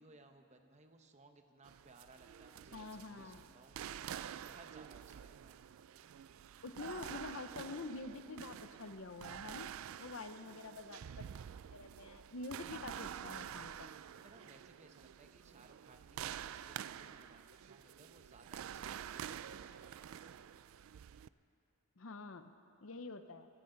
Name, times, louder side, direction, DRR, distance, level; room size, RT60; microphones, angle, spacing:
voice 1, 0.0-3.8 4.2-5.6 14.2-20.6, right 2 dB, 30° right, 6 dB, 0.9 m, -62 dB
sound 1, 1.6-21.3, right 9 dB, 65° right, 0.3 m, -48 dB
voice 2, 2.7-3.5 6.6-9.7 10.0-11.3 11.7-13.9 22.0-22.5 22.8-23.5, left 3 dB, 60° left, 10 dB, 0.7 m, -47 dB
26.0 x 14.0 x 3.9 m, 2.7 s
head